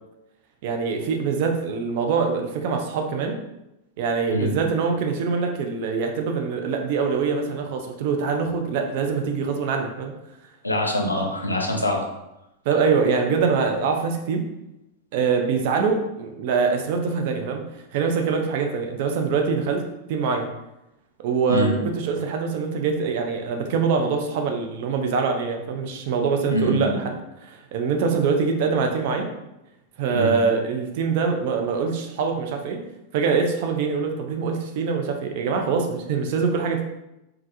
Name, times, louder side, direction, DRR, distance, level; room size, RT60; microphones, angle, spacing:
voice 1, 0.6-3.4 4.0-10.1 12.7-14.4 15.1-17.6 17.9-19.8 20.1-20.5 21.2-27.1 27.4-29.3 30.0-32.8 33.1-36.8, right 5 dB, 50° right, 4 dB, 0.4 m, -24 dB
voice 2, 10.6-12.0 21.5-21.8 26.5-26.9 30.1-30.3, left 1 dB, 85° left, 2 dB, 0.4 m, -24 dB
3.2 x 2.3 x 2.6 m, 0.91 s
figure-of-eight pair, 90°, 0 cm